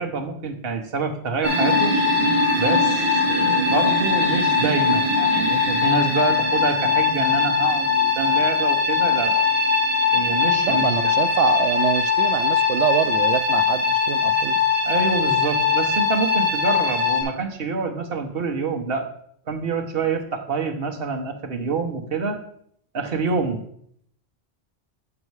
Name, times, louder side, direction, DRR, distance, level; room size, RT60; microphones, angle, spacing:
voice 1, 0.0-2.0 2.6-9.4 10.1-11.1 14.8-19.1 19.5-22.4 22.9-23.6, right 4 dB, 55° right, 3 dB, 1.3 m, -26 dB
sound 1, 1.4-17.2, left 4 dB, 30° right, 2.4 m, -20 dB
voice 2, 10.6-14.6, right 11 dB, 85° right, 12 dB, 0.9 m, -25 dB
8.4 x 5.4 x 4.7 m, 0.67 s
omnidirectional pair, 1.2 m